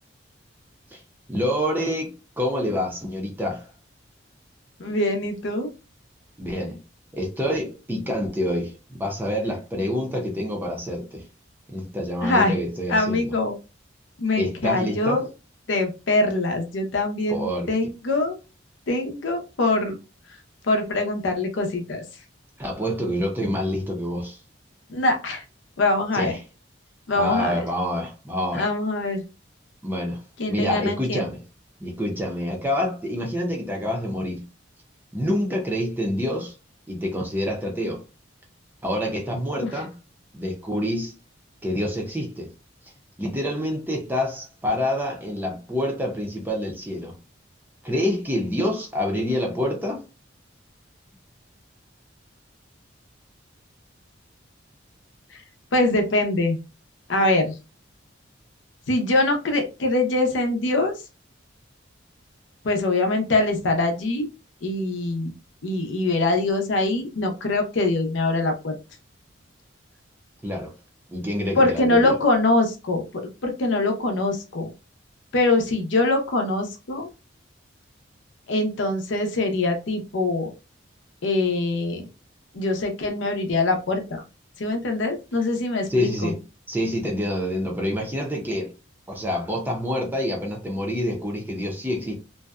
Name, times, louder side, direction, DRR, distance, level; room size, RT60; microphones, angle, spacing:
voice 1, 1.3-3.7 6.4-6.8 7.1-11.3 11.7-13.3 14.4-15.2 17.3-17.7 22.6-24.4 26.1-26.4 27.1-28.6 29.8-30.2 30.5-31.4 31.8-34.4 35.1-36.5 36.9-38.0 38.8-39.9 40.3-41.1 41.6-42.5 43.2-47.1 47.8-50.0 70.4-70.7 71.1-72.2 85.9-86.4 86.7-88.7 89.1-92.1, left 1 dB, 10° right, 0.5 m, -27 dB
voice 2, 4.8-5.7 12.2-12.6 12.9-13.5 14.2-15.3 15.7-18.4 18.9-20.0 20.6-22.0 24.9-25.4 25.8-26.3 27.1-27.6 28.5-29.2 30.4-31.2 39.6-39.7 55.3-55.4 55.7-56.6 57.1-57.5 58.9-61.0 62.6-64.3 64.6-65.3 65.6-68.7 71.6-74.7 75.3-77.1 78.5-80.5 81.2-82.1 82.5-84.2 84.6-86.3, left 2 dB, 75° left, 0.6 m, -23 dB
2.6 x 2.1 x 2.3 m
head